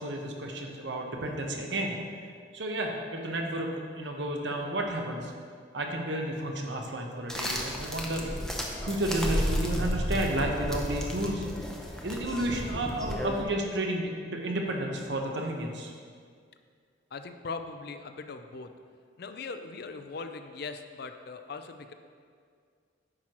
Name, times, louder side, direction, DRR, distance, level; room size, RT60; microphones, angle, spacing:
voice 1, 0.0-2.0 2.5-3.7 4.0-5.3 5.7-8.3 8.8-11.5 12.0-15.9, right 1 dB, 65° right, 1 dB, 0.9 m, -32 dB
sound 1, 7.3-13.4, equal, 5° left, 0.6 m, -33 dB
voice 2, 17.1-18.7 19.2-21.9, left 4 dB, 55° left, 8 dB, 0.4 m, -40 dB
9.7 x 6.1 x 3.0 m, 2.1 s
head